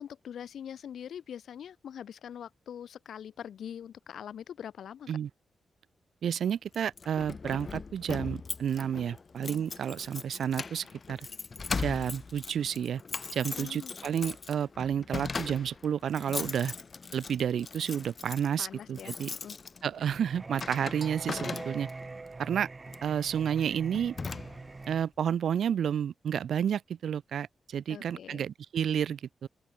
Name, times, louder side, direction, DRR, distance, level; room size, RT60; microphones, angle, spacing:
voice 1, 0.0-5.1 13.6-13.9 18.6-19.6 27.9-28.4, left 9 dB, 80° left, 4.2 m, -43 dB
voice 2, 6.2-11.3 11.8-13.0 13.3-16.7 17.1-19.3 19.8-21.9 22.4-22.7 23.0-24.1 24.9-29.5, right 8 dB, 80° right, 0.6 m, -31 dB
Keys jangling, 6.7-22.1 22.9-23.1 23.6-23.7 23.9-24.8, left 4 dB, 50° left, 6.0 m, -39 dB
Singing, 20.1-25.0, right 3 dB, 35° right, 2.1 m, -43 dB
open air
supercardioid pair, 45°, 0 cm